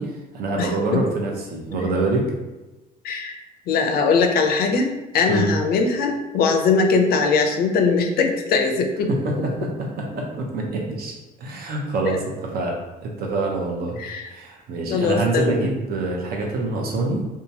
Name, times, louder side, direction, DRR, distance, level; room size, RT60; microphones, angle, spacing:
voice 1, 0.0-2.2 5.3-5.5 9.1-9.3 9.6-12.8 13.0-14.0 14.3-17.2, right 2 dB, 65° right, 0 dB, 0.7 m, -26 dB
voice 2, 0.6-1.0 3.0-3.4 3.7-9.1 12.0-12.2 14.0-14.3 14.9-15.7, left 4 dB, 65° left, 4 dB, 0.5 m, -21 dB
2.8 x 2.3 x 2.7 m, 1.1 s
cardioid pair, 110°, 17 cm